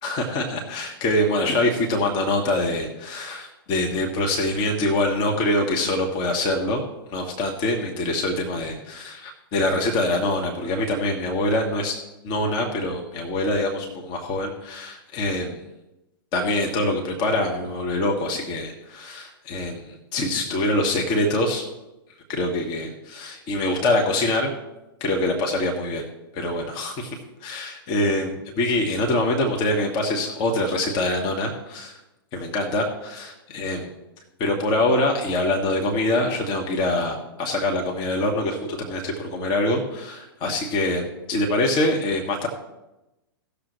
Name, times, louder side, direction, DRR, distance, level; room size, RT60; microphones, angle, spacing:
voice 1, 0.0-6.8 7.1-12.0 12.2-15.6 16.3-21.6 22.3-24.5 25.0-26.0 26.3-27.2 27.4-32.0 32.3-33.9 34.4-42.5, left 1 dB, 35° left, 1 dB, 1.6 m, -24 dB
17.5 x 6.8 x 3.2 m, 0.97 s
figure-of-eight pair, 110°, 13 cm